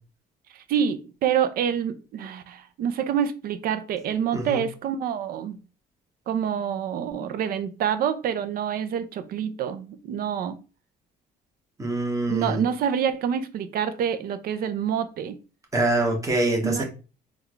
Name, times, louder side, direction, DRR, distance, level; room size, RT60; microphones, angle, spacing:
voice 1, 0.7-5.6 6.3-10.5 12.3-15.4 16.6-16.8, right 8 dB, 60° right, 0.5 m, -27 dB
voice 2, 11.8-12.6 15.7-16.8, right 2 dB, 20° right, 1.2 m, -24 dB
3.6 x 2.4 x 3.1 m
cardioid pair, 110°, 17 cm